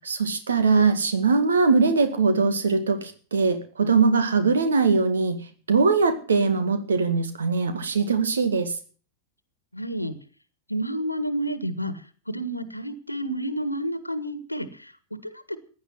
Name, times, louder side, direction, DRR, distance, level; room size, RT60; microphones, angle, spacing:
voice 1, 0.0-5.4 5.7-8.7, right 4 dB, 70° right, 10 dB, 2.0 m, -21 dB
voice 2, 9.7-10.2 10.7-15.6, right 1 dB, 85° left, 14 dB, 1.4 m, -30 dB
15.0 x 11.0 x 7.7 m, 0.41 s
figure-of-eight pair, 90°, 0 cm